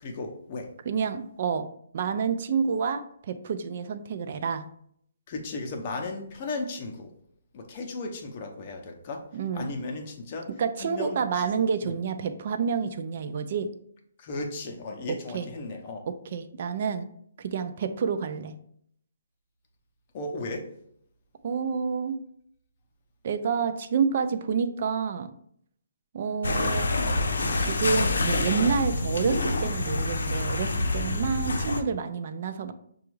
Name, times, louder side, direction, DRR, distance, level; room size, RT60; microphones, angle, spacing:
voice 1, 0.0-0.7 5.3-7.1 7.5-9.2 9.5-10.5 10.8-11.9 14.2-16.0 20.1-20.7, left 3 dB, 25° left, 3 dB, 0.6 m, -35 dB
voice 2, 0.8-1.7 1.9-4.6 9.3-9.7 10.6-13.7 15.1-15.5 16.3-17.1 17.4-18.5 21.4-22.2 23.2-25.3 26.1-27.0 27.6-32.7, right 6 dB, 40° right, 9 dB, 0.3 m, -28 dB
sound 1, 26.4-31.8, left 2 dB, 85° left, 0.6 m, -27 dB
6.0 x 2.3 x 3.1 m, 0.67 s
hypercardioid pair, 175°, 0 cm